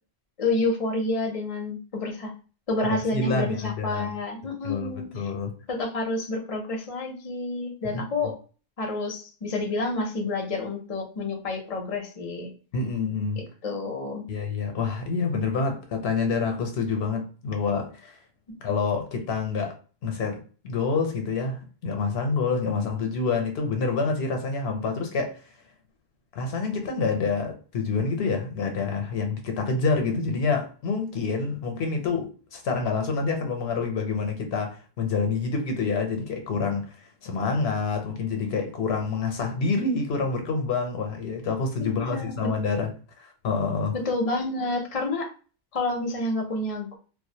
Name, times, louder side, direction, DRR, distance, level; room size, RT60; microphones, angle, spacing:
voice 1, 0.4-2.3 2.7-5.3 5.7-8.4 8.8-12.5 13.4-14.2 41.9-42.5 43.9-45.3 45.7-47.0, left 2 dB, 40° left, 0.6 m, -29 dB
voice 2, 2.9-4.1 4.6-5.5 7.8-8.0 12.7-13.4 14.3-18.2 18.6-19.7 20.0-25.4 26.3-36.9 37.2-42.9 43.2-44.0, left 4 dB, 85° left, 0.9 m, -27 dB
2.4 x 2.0 x 2.7 m
omnidirectional pair, 1.1 m